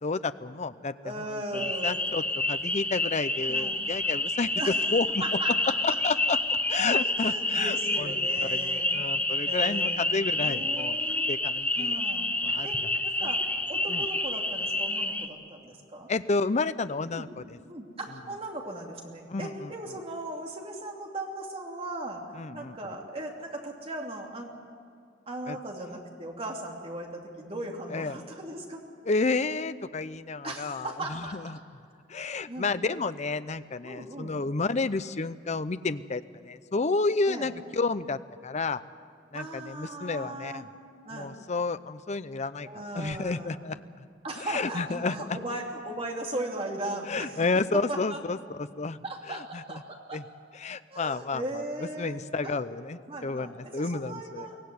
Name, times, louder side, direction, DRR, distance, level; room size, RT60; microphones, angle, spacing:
voice 1, 0.0-1.1 1.5-2.2 2.5-4.5 4.9-5.2 5.8-6.4 6.7-8.1 8.5-11.0 11.3-11.9 12.4-12.7 13.2-13.3 13.9-14.1 16.1-17.6 19.3-19.7 22.4-22.8 25.5-25.6 27.9-28.2 29.1-31.6 32.1-38.8 39.3-40.7 41.1-42.7 42.9-43.8 44.4-45.4 47.1-49.0 49.3-49.8 50.1-50.2 50.5-51.4 52.0-54.5, left 3 dB, 40° left, 13 dB, 0.6 m, -31 dB
voice 2, 1.0-2.0 3.5-3.9 4.5-4.8 5.2-6.2 7.0-9.1 9.4-10.0 10.4-11.3 11.8-12.3 12.6-13.4 13.7-16.1 17.1-17.3 17.7-24.5 25.3-28.8 30.4-31.4 32.5-32.8 33.8-34.4 37.3-37.5 39.3-40.7 41.0-41.4 42.6-43.5 44.2-48.2 49.0-50.2 50.9-52.6 53.1-54.6, right 1 dB, 30° right, 0 dB, 2.8 m, -38 dB
sound 1, 1.5-15.3, left 2 dB, 10° left, 1.1 m, -28 dB
23.5 x 16.5 x 9.5 m, 2.2 s
head